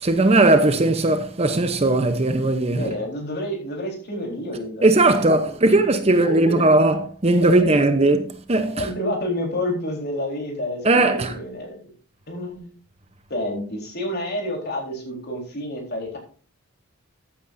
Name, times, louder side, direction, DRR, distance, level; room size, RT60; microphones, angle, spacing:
voice 1, 0.0-2.9 4.8-8.9 10.8-11.4, right 2 dB, 30° right, 0.8 m, -18 dB
voice 2, 2.7-5.2 5.6-5.7 6.1-6.5 7.4-7.8 8.7-11.8 12.3-12.7 13.3-16.2, left 1 dB, 50° left, 3.9 m, -29 dB
14.0 x 9.1 x 2.6 m
head